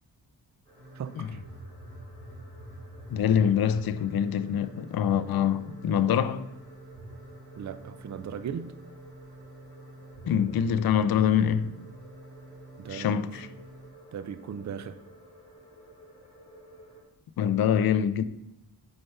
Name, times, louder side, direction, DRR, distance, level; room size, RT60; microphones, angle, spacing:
sound 1, 0.6-17.0, right 1 dB, 10° left, 2.4 m, -53 dB
sound 2, 0.7-13.9, right 2 dB, 85° right, 2.9 m, -47 dB
voice 1, 0.9-1.4 7.6-8.7 12.8-13.5 14.1-15.0, right 7 dB, 45° right, 0.5 m, -38 dB
voice 2, 3.1-6.5 10.3-11.7 12.9-13.5 17.4-18.2, left 8 dB, 65° left, 0.5 m, -25 dB
6.6 x 4.5 x 5.5 m
wide cardioid pair, 125°, 40 cm